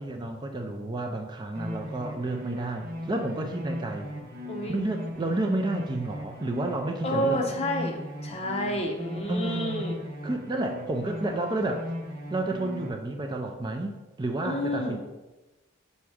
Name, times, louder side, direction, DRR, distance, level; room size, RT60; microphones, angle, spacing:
voice 1, 0.0-4.1 4.7-7.4 9.3-9.8 10.2-11.8 12.3-15.0, right 2 dB, 20° right, 3 dB, 0.4 m, -30 dB
sound 1, 1.5-12.9, left 1 dB, 45° right, 1.2 m, -38 dB
voice 2, 4.4-4.8 7.0-9.9 14.4-15.0, equal, 30° left, 1 dB, 0.9 m, -29 dB
5.9 x 4.2 x 4.9 m, 1.1 s
head